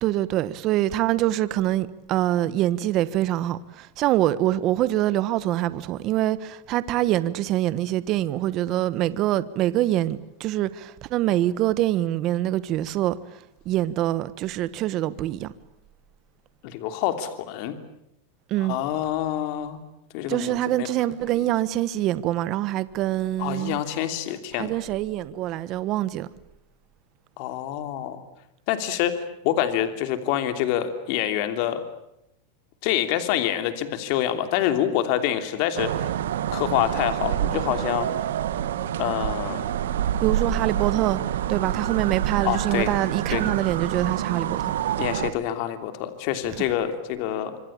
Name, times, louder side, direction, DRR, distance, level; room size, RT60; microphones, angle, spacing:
voice 1, 0.0-13.2 13.6-15.5 18.5-18.8 20.3-23.8 24.5-26.3 40.2-44.7, right 14 dB, 40° right, 1.3 m, -25 dB
voice 2, 16.6-17.8 18.6-19.8 20.1-20.9 23.4-24.7 27.4-28.2 28.7-29.2 29.4-31.8 32.8-36.1 36.5-38.1 39.0-39.6 42.4-42.9 43.3-43.4 45.0-47.6, left 11 dB, 50° left, 3.0 m, -26 dB
sound 1, 35.8-45.3, right 10 dB, 85° right, 1.7 m, -27 dB
26.0 x 25.5 x 8.7 m
supercardioid pair, 150°, 0 cm